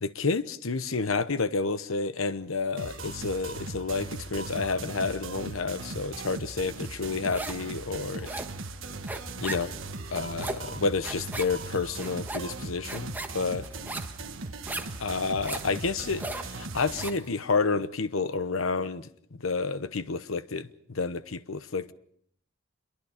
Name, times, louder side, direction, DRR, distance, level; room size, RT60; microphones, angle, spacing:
voice 1, 0.0-8.3 9.4-9.7 10.1-13.7 15.0-21.9, left 4 dB, 85° left, 0.9 m, -30 dB
sound 1, 2.8-17.1, right 3 dB, 70° right, 1.4 m, -39 dB
sound 2, 6.8-7.7 8.0-17.3, right 2 dB, 10° right, 1.4 m, -38 dB
26.5 x 23.0 x 5.0 m
head